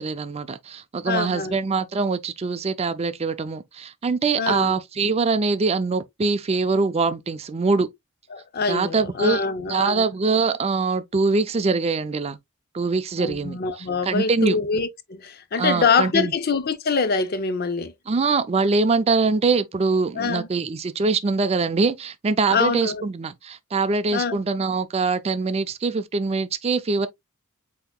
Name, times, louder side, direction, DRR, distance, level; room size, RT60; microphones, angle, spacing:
voice 1, 0.0-7.9 8.7-9.4 9.7-12.4 12.7-14.6 15.6-16.3 18.1-27.1, right 4 dB, 30° right, 0.4 m, -23 dB
voice 2, 1.1-1.6 4.4-4.7 8.3-10.1 13.2-17.9 20.2-20.5 22.5-23.0 24.1-24.4, left 5 dB, 45° left, 0.6 m, -24 dB
7.9 x 2.8 x 2.2 m
head